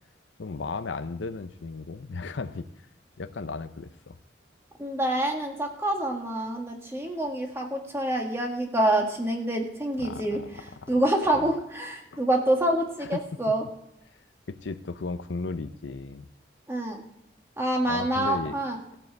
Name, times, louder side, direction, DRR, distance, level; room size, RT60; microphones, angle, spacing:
voice 1, 0.4-2.7 3.2-4.2 10.0-10.5 10.8-10.9 11.3-11.5 12.1-12.2 13.0-13.2 14.5-16.3 17.9-18.5, left 3 dB, 75° left, 11 dB, 0.6 m, -35 dB
voice 2, 4.8-13.6 16.7-17.0 17.6-18.8, right 1 dB, 15° right, 1 dB, 1.6 m, -27 dB
14.5 x 5.5 x 7.8 m, 0.76 s
head